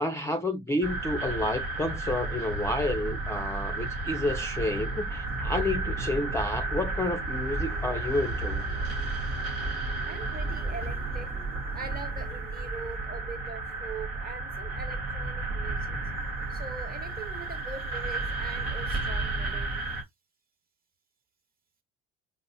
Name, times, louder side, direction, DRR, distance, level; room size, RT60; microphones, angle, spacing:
voice 1, 0.0-8.6, left 1 dB, 10° left, 0.4 m, -30 dB
sound 1, 0.8-20.0, right 2 dB, 90° right, 1.1 m, -32 dB
sound 2, 5.6-14.0, right 7 dB, 50° right, 1.1 m, -51 dB
voice 2, 10.0-11.3 11.7-16.0 16.5-19.9, right 4 dB, 30° right, 1.0 m, -42 dB
5.3 x 2.0 x 2.6 m
supercardioid pair, 85°, 30 cm